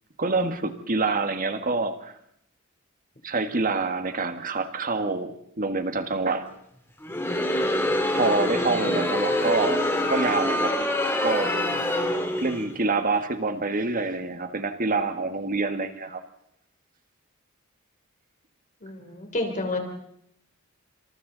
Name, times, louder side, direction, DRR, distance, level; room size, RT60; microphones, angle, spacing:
voice 1, 0.2-2.1 3.2-6.5 8.1-10.7 11.2-11.5 12.4-16.2, right 3 dB, 45° right, 8 dB, 1.8 m, -26 dB
Crowd, 7.0-12.7, left 1 dB, 10° left, 3.1 m, -25 dB
voice 2, 18.8-19.8, left 2 dB, 40° left, 3 dB, 3.7 m, -29 dB
27.5 x 27.0 x 4.1 m, 0.74 s
head